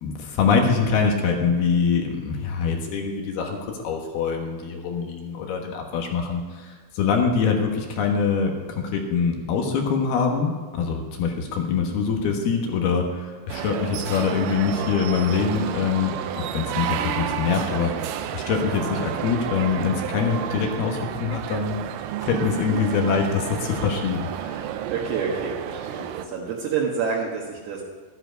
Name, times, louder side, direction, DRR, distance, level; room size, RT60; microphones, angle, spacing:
voice 1, 0.0-21.8 22.2-24.7, left 5 dB, 65° left, 2 dB, 2.8 m, -24 dB
sound 1, 13.5-26.3, right 10 dB, 85° right, 3.2 m, -31 dB
voice 2, 24.9-27.8, right 5 dB, 65° right, -4 dB, 3.2 m, -28 dB
13.5 x 10.5 x 5.2 m, 1.5 s
omnidirectional pair, 5.6 m